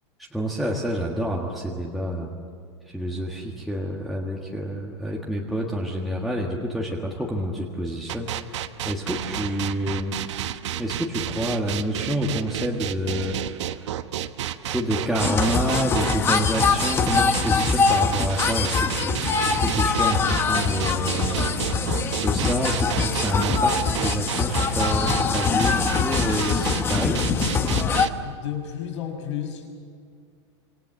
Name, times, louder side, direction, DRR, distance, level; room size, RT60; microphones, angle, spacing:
voice 1, 0.2-2.3 2.9-10.2 10.8-13.9 14.6-21.6 22.2-27.3, equal, ahead, -3 dB, 1.6 m, -28 dB
sound 1, 8.1-28.1, right 11 dB, 80° right, 1.2 m, -31 dB
sound 2, 15.2-28.1, left 5 dB, 15° left, 1.1 m, -23 dB
sound 3, 19.4-24.9, right 10 dB, 40° right, 1.1 m, -38 dB
voice 2, 28.1-29.7, left 9 dB, 90° left, 4 dB, 6.0 m, -32 dB
26.5 x 26.0 x 7.5 m, 2.2 s
supercardioid pair, 165°, 15 cm